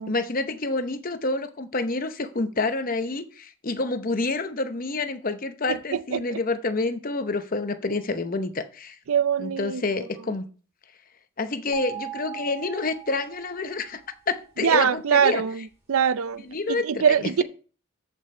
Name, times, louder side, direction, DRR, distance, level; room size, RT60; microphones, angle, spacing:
voice 1, 0.1-9.0 9.4-10.4 11.4-14.0 14.3-15.4 16.5-17.3, left 3 dB, 40° left, 0.8 m, -28 dB
voice 2, 5.7-6.4 9.1-9.8 14.6-16.4 16.7-17.4, right 7 dB, 80° right, 0.5 m, -23 dB
sound 1, 11.7-14.0, right 9 dB, 10° right, 5.5 m, -39 dB
13.5 x 5.4 x 4.4 m
head